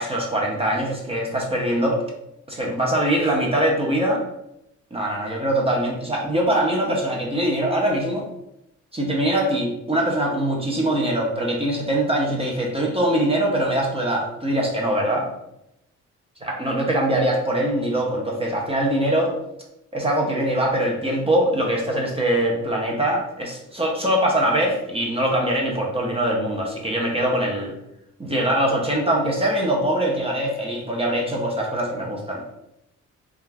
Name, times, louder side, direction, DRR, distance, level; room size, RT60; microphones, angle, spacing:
voice 1, 0.0-2.0 2.5-4.2 4.9-8.2 8.9-15.3 16.4-19.3 19.9-27.7 28.2-32.4, right 1 dB, 20° right, -1 dB, 0.5 m, -22 dB
2.3 x 2.3 x 3.2 m, 0.83 s
cardioid pair, 90°, 30 cm